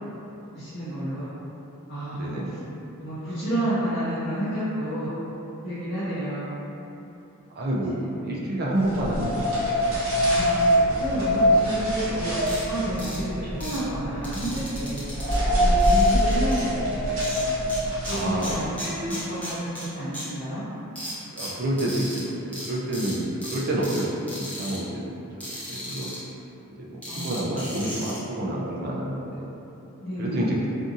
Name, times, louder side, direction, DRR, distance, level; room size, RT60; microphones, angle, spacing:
voice 1, 0.5-1.3 1.9-2.6 3.0-5.1 5.6-6.5 10.3-10.5 11.0-12.4 12.6-15.0 15.6-17.0 17.8-20.6 27.1-27.4 30.0-30.6, right 1 dB, 45° left, -14 dB, 0.6 m, -30 dB
voice 2, 2.1-2.6 7.6-9.8 13.4-13.6 18.1-18.6 21.3-25.2 25.7-26.1 26.8-29.5 30.2-30.6, right 1 dB, 45° right, -4 dB, 0.3 m, -29 dB
sound 1, 8.8-18.8, equal, 75° right, 1.0 m, -24 dB
sound 2, 12.5-12.6 13.0-13.2 13.6-13.8 14.2-15.3 15.8-16.6 17.2-17.8 18.0-19.8 20.1-20.2 21.0-22.2 22.5-22.7 22.9-23.1 23.4-24.0 24.3-24.8 25.4-26.2 27.0-28.2, equal, 5° left, 0.6 m, -36 dB
2.5 x 2.5 x 2.6 m, 2.9 s
head